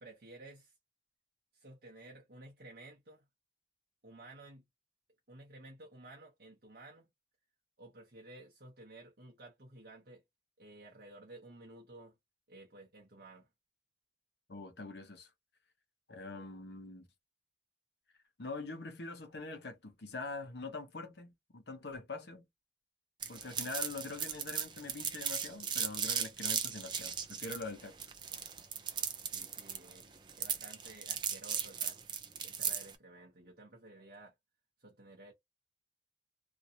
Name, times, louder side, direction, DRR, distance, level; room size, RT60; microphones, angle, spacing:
voice 1, 0.0-0.8 1.5-3.2 4.0-4.6 5.3-7.1 7.8-10.2 10.6-12.1 12.5-13.5 29.2-30.1 30.4-32.0 32.4-34.3 34.8-35.3, right 2 dB, 55° right, 0.9 m, -54 dB
voice 2, 14.5-15.3 16.1-17.1 18.4-22.4 23.3-27.9, left 3 dB, 65° left, 0.9 m, -44 dB
sound 1, 23.2-32.9, right 7 dB, 25° right, 0.5 m, -37 dB
3.0 x 2.7 x 2.7 m
head